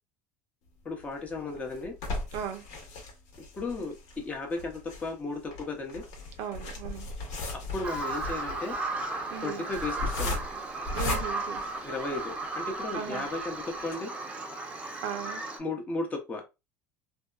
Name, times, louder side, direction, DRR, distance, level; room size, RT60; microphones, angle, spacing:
voice 1, 0.8-2.0 3.6-6.0 7.5-8.8 9.4-10.4 11.8-14.1 15.6-16.4, left 3 dB, 20° left, 0.6 m, -35 dB
sound 1, 1.0-12.4 12.9-13.0 13.3-13.4 13.8-13.9, left 2 dB, 65° left, 1.0 m, -37 dB
voice 2, 2.3-2.6 6.4-7.1 9.3-9.6 10.9-11.6 12.9-13.3 15.0-15.4, right 9 dB, 65° right, 0.5 m, -36 dB
Bird vocalization bird call bird song, 7.8-15.6, right 2 dB, 15° right, 0.6 m, -35 dB
2.7 x 2.2 x 2.3 m
supercardioid pair, 130°, 7 cm